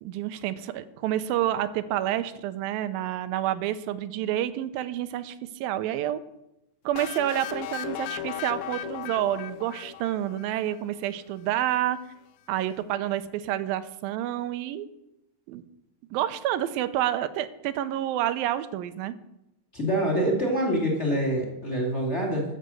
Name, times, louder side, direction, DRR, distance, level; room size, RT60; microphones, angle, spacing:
voice 1, 0.0-6.2 6.9-12.0 12.5-14.9 15.5-15.6 16.1-19.2, right 12 dB, 90° right, 12 dB, 2.5 m, -29 dB
sound 1, 7.0-10.7, left 10 dB, 80° left, 1.7 m, -36 dB
voice 2, 19.7-22.4, right 1 dB, 20° left, 0 dB, 2.6 m, -25 dB
13.5 x 6.7 x 7.7 m, 0.87 s
omnidirectional pair, 4.0 m